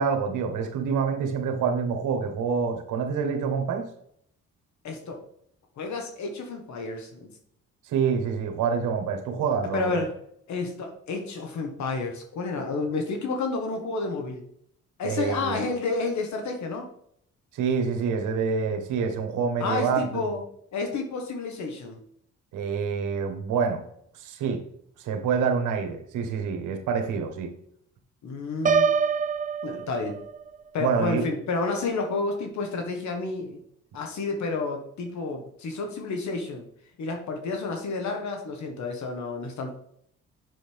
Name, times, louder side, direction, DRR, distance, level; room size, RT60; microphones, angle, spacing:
voice 1, 0.0-3.9 7.8-10.0 15.0-15.6 17.5-20.2 22.5-23.8 24.1-24.6 25.0-27.5 30.8-31.2, right 6 dB, 85° right, 5 dB, 1.4 m, -27 dB
voice 2, 4.8-5.2 5.8-7.3 9.7-10.1 10.5-14.4 15.0-16.9 19.6-20.4 20.7-22.0 28.2-28.9 29.6-30.2 30.7-33.6 33.9-36.7 37.0-39.7, left 3 dB, 70° left, 3 dB, 1.4 m, -30 dB
Piano, 28.7-30.6, right 6 dB, 25° right, 0.5 m, -25 dB
7.6 x 6.4 x 3.5 m, 0.69 s
cardioid pair, 90°, 30 cm